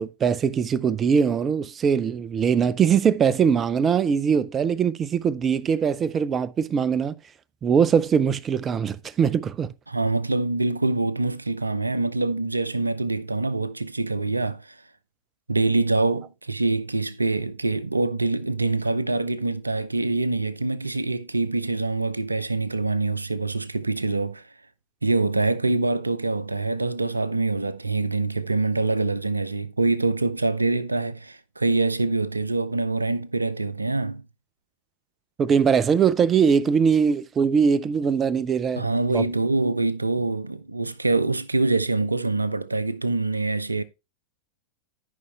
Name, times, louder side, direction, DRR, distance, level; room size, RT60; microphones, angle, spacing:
voice 1, 0.0-7.2 7.6-9.7 35.4-39.3, right 6 dB, 25° right, 0.5 m, -21 dB
voice 2, 9.9-14.7 15.5-24.4 25.0-34.2 38.8-43.8, right 3 dB, 80° right, 0.6 m, -25 dB
12.5 x 5.5 x 3.4 m
figure-of-eight pair, 90°, 0 cm